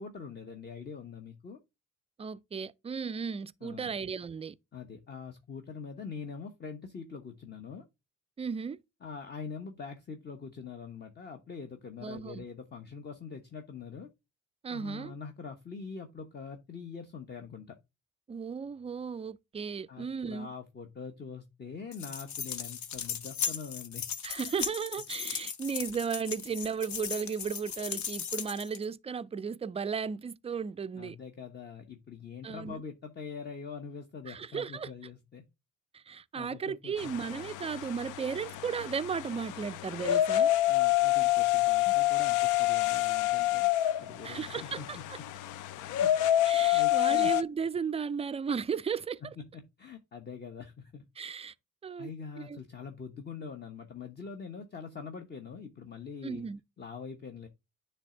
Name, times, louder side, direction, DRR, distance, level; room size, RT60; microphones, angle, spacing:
voice 1, 0.0-1.6 3.6-3.9 4.7-7.8 9.0-14.1 14.7-17.8 19.9-24.1 30.9-35.4 36.3-37.0 40.7-43.7 44.0-45.0 45.9-46.1 46.7-47.3 49.2-49.5 49.8-51.0 52.0-56.4 56.8-57.5, left 5 dB, 35° left, 1.1 m, -44 dB
voice 2, 2.2-4.6 8.4-8.8 12.0-12.4 14.6-15.1 18.3-20.5 24.2-31.2 32.4-32.8 34.3-34.9 35.9-40.5 44.2-45.2 46.4-49.2 51.2-51.5 51.8-52.1 52.4-52.6 56.2-56.6, right 6 dB, 20° right, 0.3 m, -35 dB
sound 1, 21.9-28.8, left 7 dB, 70° left, 1.1 m, -37 dB
sound 2, 37.0-47.4, left 15 dB, 85° left, 0.5 m, -28 dB
9.7 x 3.4 x 3.8 m
cardioid pair, 90°, 30 cm